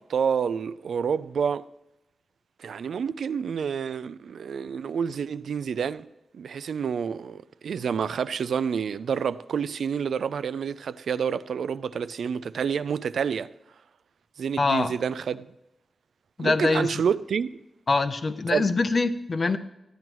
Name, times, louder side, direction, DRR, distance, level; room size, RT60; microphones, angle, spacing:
voice 1, 0.0-1.6 2.6-13.5 14.4-15.5 16.4-17.5 18.5-18.7, right 7 dB, 80° right, 0.3 m, -28 dB
voice 2, 14.6-14.9 16.4-16.9 17.9-19.6, left 3 dB, 40° left, 0.6 m, -24 dB
13.5 x 9.2 x 3.1 m
wide cardioid pair, 125°, 0 cm